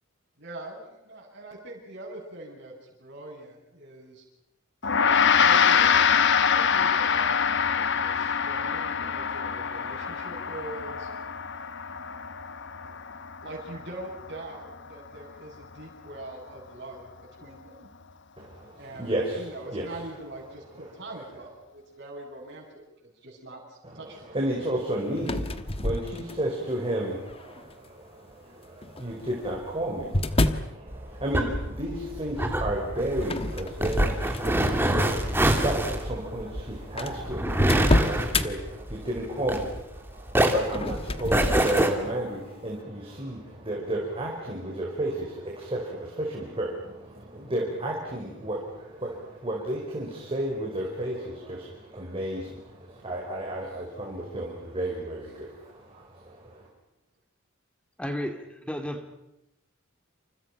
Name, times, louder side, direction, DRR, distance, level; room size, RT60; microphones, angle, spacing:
voice 1, 0.4-4.2 4.9-11.1 12.8-13.0 13.4-17.9 18.8-24.3, right 1 dB, 50° right, -7 dB, 8.0 m, -43 dB
Gong, 4.8-14.4, left 7 dB, 60° left, 1.2 m, -24 dB
voice 2, 18.4-20.0 20.7-20.8 23.8-56.7, right 1 dB, 25° right, -1 dB, 5.0 m, -33 dB
sound 1, 25.2-26.6 27.3-27.7 28.8-30.7 33.2-34.8 35.2-35.5 36.3-36.4 36.5-36.6 37.0-38.5 40.6-41.9, left 1 dB, 25° left, 1.3 m, -28 dB
sound 2, 30.9-40.0 40.3-41.9, right 1 dB, 10° right, 2.8 m, -25 dB
voice 3, 58.0-59.1, equal, 5° left, 6 dB, 2.2 m, -33 dB
29.0 x 28.0 x 5.9 m, 0.88 s
head